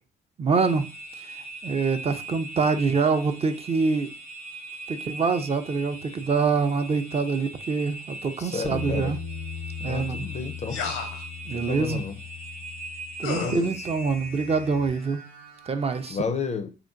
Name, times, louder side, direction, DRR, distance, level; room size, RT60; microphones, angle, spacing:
voice 1, 0.4-0.9 1.2-1.3 1.6-4.1 4.9-9.2 9.8-10.3 11.5-12.0 13.2-15.2 15.7-16.2, right 4 dB, 30° right, 0.4 m, -25 dB
sound 1, 0.5-16.1, right 2 dB, 90° right, 0.9 m, -40 dB
voice 2, 8.4-9.1 9.8-10.8 11.5-12.2 13.4-13.9 16.1-16.7, left 5 dB, 35° left, 0.4 m, -31 dB
Bass guitar, 8.6-14.9, left 6 dB, 70° right, 0.6 m, -39 dB
sound 2, 10.7-11.3 13.2-13.6, left 5 dB, 85° left, 0.7 m, -31 dB
3.7 x 2.2 x 2.4 m
cardioid pair, 90°, 20 cm